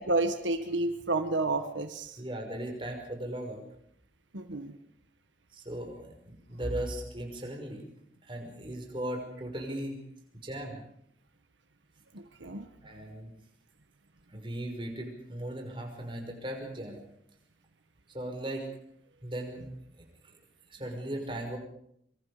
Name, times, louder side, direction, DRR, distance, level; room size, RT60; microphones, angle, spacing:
voice 1, 0.0-2.2 4.3-4.8 12.1-12.7, right 2 dB, 85° right, 8 dB, 1.6 m, -30 dB
voice 2, 2.2-3.6 5.5-7.8 8.2-9.9 10.4-10.8 12.8-13.3 14.3-17.0 18.1-18.7 19.2-19.7 20.0-20.4 20.7-21.6, right 1 dB, 25° right, 2 dB, 5.8 m, -37 dB
25.5 x 25.0 x 5.1 m, 0.70 s
head